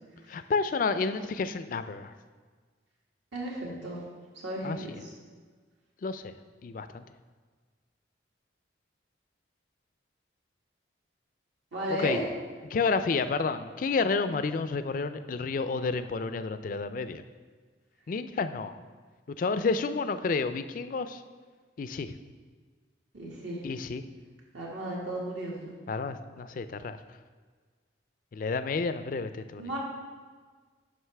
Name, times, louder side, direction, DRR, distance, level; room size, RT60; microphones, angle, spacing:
voice 1, 0.3-2.1 4.6-4.8 6.0-6.3 6.6-7.0 12.0-12.2 12.7-17.2 18.1-18.8 19.3-21.2 21.8-22.1 23.6-24.0 25.9-27.0 28.3-29.6, left 4 dB, 45° left, 11 dB, 0.3 m, -30 dB
voice 2, 3.3-4.1 4.4-5.1 11.7-12.3 23.1-23.6 24.5-25.7 29.6-29.8, right 1 dB, 75° right, -4 dB, 2.0 m, -34 dB
9.3 x 6.0 x 3.3 m, 1.5 s
head